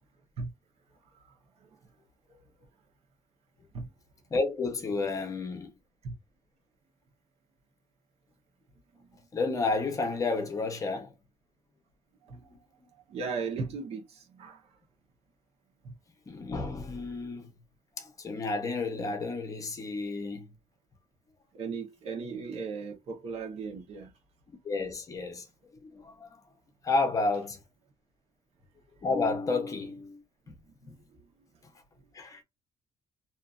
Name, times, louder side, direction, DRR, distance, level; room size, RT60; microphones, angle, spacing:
voice 1, 4.3-5.7 9.3-11.1 12.3-12.4 16.3-17.5 18.0-20.5 24.5-25.5 25.8-26.4 26.8-27.6 29.0-30.2 30.9-31.0 32.1-32.4, left 3 dB, 30° left, 0.9 m, -31 dB
voice 2, 13.1-14.0 14.3-14.6 15.8-15.9 21.5-24.1, right 4 dB, 55° right, 1.1 m, -36 dB
2.8 x 2.6 x 2.3 m
cardioid pair, 150°, 12 cm